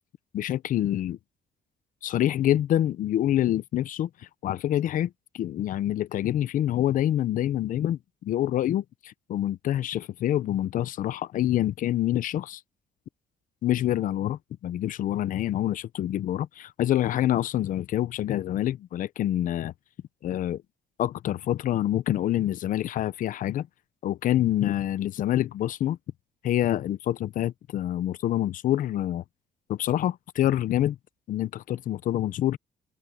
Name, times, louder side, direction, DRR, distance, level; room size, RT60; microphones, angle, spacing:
voice 1, 0.3-1.2 2.0-4.1 4.4-12.6 13.6-19.7 20.2-20.6 21.0-23.7 24.0-26.0 26.4-29.2 29.7-31.0 31.3-32.6, left 12 dB, 55° left, 0.7 m, -26 dB
open air
cardioid pair, 135°, 16 cm